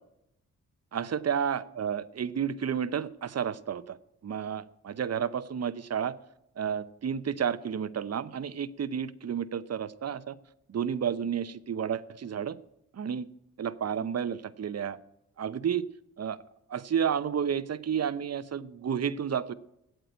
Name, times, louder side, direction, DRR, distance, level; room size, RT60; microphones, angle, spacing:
voice 1, 0.9-4.0 4.2-6.2 6.6-10.4 10.7-12.6 12.9-13.3 13.6-15.0 15.4-15.9 16.2-16.4 16.7-19.5, right 8 dB, 45° right, 16 dB, 0.8 m, -31 dB
8.8 x 7.9 x 9.2 m, 0.83 s
supercardioid pair, 45°, 37 cm